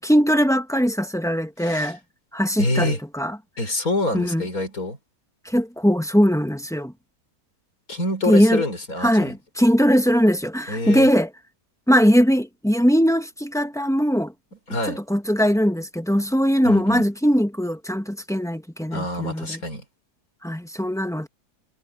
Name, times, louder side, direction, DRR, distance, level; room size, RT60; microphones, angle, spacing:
voice 1, 0.0-2.0 2.3-3.4 4.1-4.5 5.4-6.9 8.3-8.6 9.0-11.3 11.9-14.3 14.9-19.6 20.4-21.3, equal, ahead, 1.0 m, -20 dB
voice 2, 1.6-1.9 2.6-3.0 3.6-5.0 7.9-9.3 10.7-11.1 14.7-15.0 16.6-17.1 18.9-19.8, left 1 dB, 60° left, 5.5 m, -26 dB
omnidirectional pair, 1.7 m